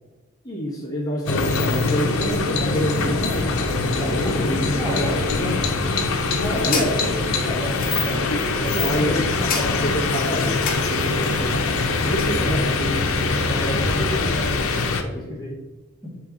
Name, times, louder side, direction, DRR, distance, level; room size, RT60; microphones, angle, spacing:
voice 1, 0.4-5.0 6.6-6.9 8.7-9.2 9.5-11.6 12.0-12.9, equal, 15° left, -5 dB, 1.3 m, -27 dB
sound 1, 1.3-15.0, left 3 dB, 75° left, 0.7 m, -23 dB
sound 2, 2.3-14.1, equal, 65° right, 2.1 m, -38 dB
voice 2, 3.6-5.7 6.4-6.9 7.4-8.3 8.6-9.2 11.0-11.3 12.4-12.6 13.3-14.3 15.0-15.6 16.0-16.1, left 1 dB, 15° right, -7 dB, 1.8 m, -30 dB
sound 3, 6.1-12.4, left 4 dB, 40° left, 1.4 m, -34 dB
7.6 x 4.5 x 3.7 m, 1.2 s
head